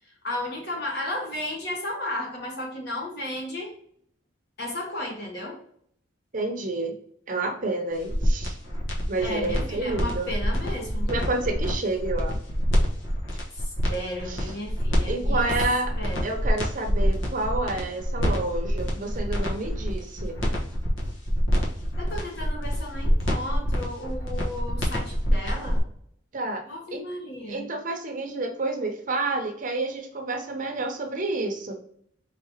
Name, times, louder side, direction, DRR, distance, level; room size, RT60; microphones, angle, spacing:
voice 1, 0.2-3.7 4.6-5.6 9.2-11.1 13.5-15.5 16.0-16.3 22.0-25.8 26.7-27.6, left 1 dB, 55° left, 0 dB, 1.4 m, -34 dB
voice 2, 6.3-7.0 7.3-8.6 9.1-10.3 11.1-12.4 14.3-14.4 15.1-15.9 16.2-20.4 26.3-26.6 26.9-27.0 27.5-31.8, right 2 dB, 40° right, 4 dB, 0.7 m, -29 dB
sound 1, 8.0-25.8, equal, 80° left, 1.2 m, -26 dB
4.8 x 3.5 x 2.9 m, 0.65 s
head